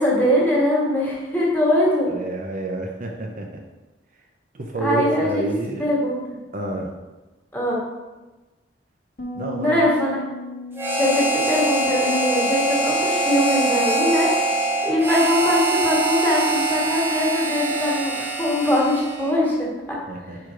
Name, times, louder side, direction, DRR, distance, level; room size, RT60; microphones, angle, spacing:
voice 1, 0.0-2.1 4.8-5.4 5.8-6.2 7.5-7.8 9.6-10.2 11.0-14.3 14.8-20.0, left 1 dB, 10° left, -4 dB, 1.7 m, -21 dB
voice 2, 2.1-3.6 4.5-5.9 6.5-6.9 9.3-9.8 20.1-20.4, right 2 dB, 50° right, 1 dB, 0.7 m, -29 dB
Bass guitar, 9.2-18.5, left 3 dB, 50° left, 1.0 m, -40 dB
Harmonica, 10.8-19.4, right 2 dB, 15° right, 0.8 m, -23 dB
5.2 x 4.7 x 5.0 m, 1.2 s
head